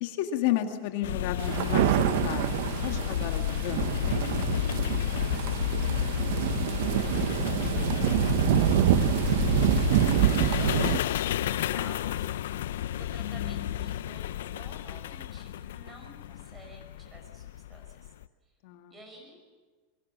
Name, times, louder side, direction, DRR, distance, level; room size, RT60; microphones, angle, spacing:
voice 1, 0.0-2.5 2.8-4.3 13.2-13.7 18.6-18.9, left 12 dB, 50° left, 5 dB, 1.9 m, -33 dB
sound 1, 1.0-18.2, left 11 dB, 75° left, 0.8 m, -31 dB
sound 2, 1.4-11.0, right 13 dB, 55° right, 0.8 m, -26 dB
voice 2, 5.1-6.9 7.2-12.3 13.0-18.1 18.4-18.5 18.9-19.4, right 1 dB, 10° right, 4 dB, 5.4 m, -52 dB
27.5 x 24.0 x 7.6 m, 1.4 s
supercardioid pair, 175°, 0 cm